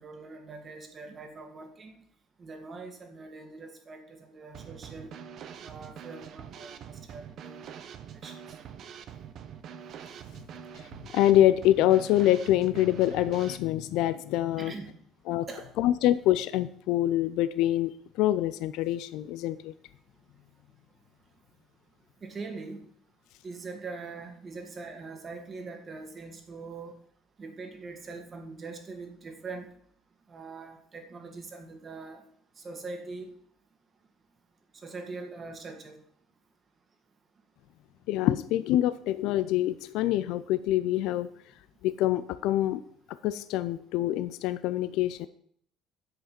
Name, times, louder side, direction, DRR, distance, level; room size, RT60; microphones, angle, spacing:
voice 1, 0.0-1.9 2.4-5.1 5.6-7.8 8.1-8.4 14.6-14.9 15.5-15.7 22.2-22.8 23.4-27.0 27.4-29.7 30.3-32.2 32.6-33.4 34.8-36.0, right 3 dB, 40° right, 4 dB, 2.1 m, -42 dB
Drum kit / Snare drum, 4.5-13.6, right 8 dB, 55° right, 0.9 m, -44 dB
voice 2, 11.1-14.7 15.3-15.5 15.8-17.9 18.2-19.7 38.1-41.3 41.8-42.8 43.2-45.3, left 13 dB, 65° left, 14 dB, 0.4 m, -25 dB
10.5 x 7.7 x 4.4 m, 0.64 s
hypercardioid pair, 55°, 0 cm